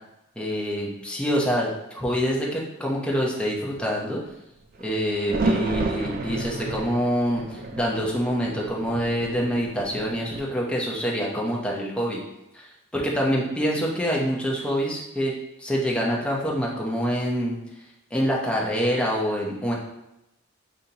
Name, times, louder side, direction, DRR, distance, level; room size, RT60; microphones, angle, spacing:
voice 1, 0.4-4.2 4.8-12.2 12.5-17.6 18.1-19.7, equal, 5° left, -4 dB, 0.7 m, -26 dB
sound 1, 4.8-10.4, right 3 dB, 45° right, 0.4 m, -31 dB
5.2 x 2.8 x 2.8 m, 0.88 s
head